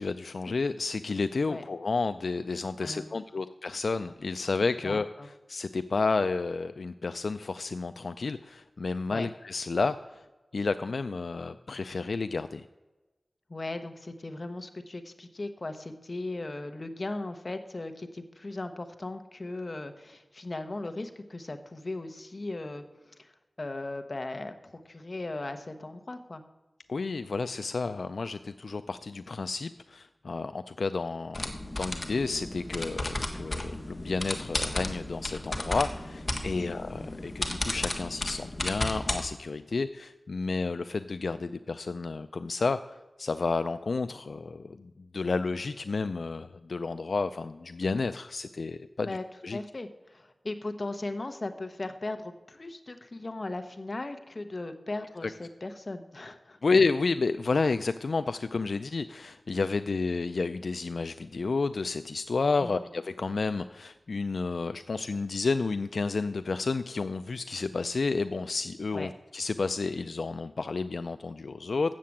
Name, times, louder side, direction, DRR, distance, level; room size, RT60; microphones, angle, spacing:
voice 1, 0.0-10.2 10.5-12.6 26.9-49.2 49.4-49.6 55.2-55.3 56.6-71.9, left 4 dB, 80° left, 11 dB, 0.3 m, -31 dB
voice 2, 2.8-3.2 4.8-5.3 9.1-9.3 13.5-22.8 23.2-23.3 23.6-26.4 36.5-36.7 49.0-49.2 49.5-56.6 62.6-62.7 68.9-69.1, left 2 dB, 45° left, 8 dB, 1.0 m, -37 dB
sound 1, 31.3-39.2, left 1 dB, 30° left, 1.4 m, -34 dB
7.6 x 7.5 x 8.4 m, 1.1 s
wide cardioid pair, 75°, 0 cm